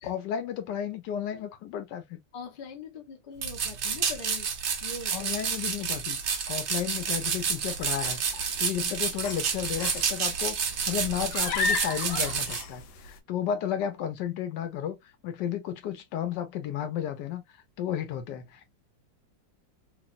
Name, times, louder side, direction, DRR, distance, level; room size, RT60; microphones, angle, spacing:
voice 1, 0.0-2.2 5.1-8.2 8.6-15.0 15.2-17.4 17.8-18.7, left 9 dB, 70° left, 1.2 m, -33 dB
voice 2, 2.3-4.5 4.8-5.4, left 4 dB, 55° left, 0.6 m, -42 dB
sound 1, 3.4-12.6, right 6 dB, 70° right, 0.6 m, -30 dB
sound 2, 6.9-13.2, left 4 dB, 90° left, 1.4 m, -36 dB
3.1 x 2.6 x 2.3 m
omnidirectional pair, 2.0 m